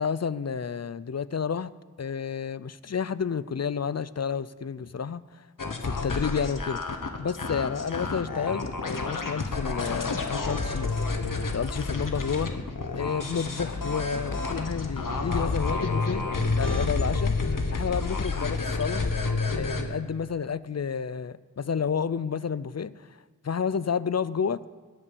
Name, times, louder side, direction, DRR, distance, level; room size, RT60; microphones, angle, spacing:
voice 1, 0.0-1.7 2.0-5.5 5.8-6.8 7.2-10.9 11.5-12.5 13.0-16.3 16.6-17.4 17.7-19.1 19.6-24.6, left 6 dB, 50° left, 17 dB, 0.5 m, -30 dB
sound 1, 5.6-19.8, left 3 dB, 75° left, 1.3 m, -29 dB
18.0 x 8.6 x 6.9 m, 1.5 s
wide cardioid pair, 50°, 33 cm